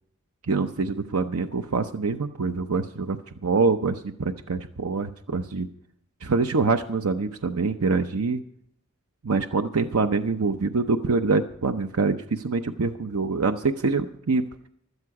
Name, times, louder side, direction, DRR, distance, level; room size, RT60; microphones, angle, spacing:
voice 1, 0.5-5.7 6.2-8.4 9.2-14.5, right 4 dB, 85° right, 7 dB, 0.8 m, -25 dB
16.5 x 13.0 x 4.8 m, 0.69 s
head